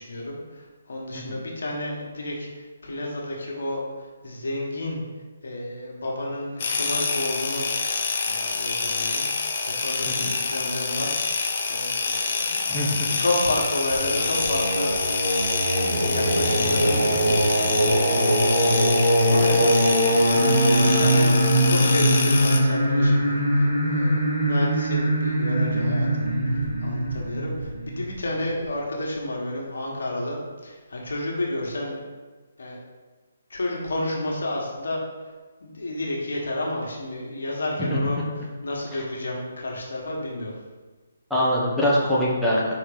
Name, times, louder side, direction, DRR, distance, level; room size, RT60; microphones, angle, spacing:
voice 1, 0.0-5.0 5.4-8.0 8.2-9.3 9.6-11.2 11.7-15.5 15.9-17.4 17.9-32.0 32.6-32.8 33.5-35.0 35.6-40.5, left 1 dB, 70° left, -2 dB, 1.6 m, -31 dB
sound 1, 6.6-22.6, left 4 dB, 50° left, 0.8 m, -27 dB
voice 2, 12.7-13.1 37.8-38.0 41.3-42.7, equal, ahead, -8 dB, 1.2 m, -23 dB
Singing, 13.9-28.6, equal, 55° right, 1.9 m, -22 dB
5.0 x 4.3 x 5.1 m, 1.3 s
figure-of-eight pair, 145°, 0 cm